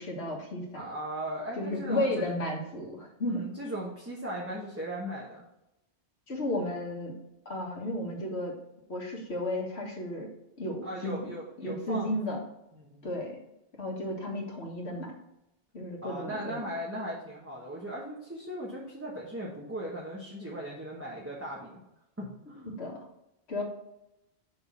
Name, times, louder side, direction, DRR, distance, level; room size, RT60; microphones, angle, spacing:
voice 1, 0.0-0.8 1.6-3.5 6.3-7.1 7.5-8.5 8.9-10.3 10.6-11.2 11.6-12.4 13.0-13.4 13.8-15.1 15.7-16.6 22.7-23.0 23.5-23.6, left 1 dB, 70° left, 0 dB, 1.8 m, -33 dB
voice 2, 0.7-2.3 3.3-5.4 10.8-12.4 12.7-13.1 16.0-21.8 22.2-22.8, right 1 dB, 15° right, -4 dB, 1.1 m, -38 dB
6.2 x 3.8 x 6.1 m, 0.87 s
omnidirectional pair, 1.1 m